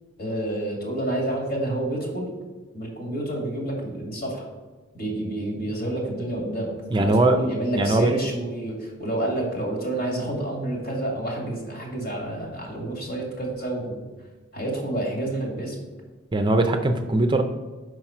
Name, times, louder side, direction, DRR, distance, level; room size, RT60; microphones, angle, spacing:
voice 1, 0.2-2.3 2.7-4.5 4.9-14.0 14.5-15.8, right 1 dB, 55° left, -2 dB, 2.4 m, -29 dB
voice 2, 6.9-7.4 7.7-8.1 16.3-17.4, right 2 dB, 25° right, 6 dB, 0.5 m, -20 dB
5.7 x 4.9 x 5.9 m, 1.3 s
head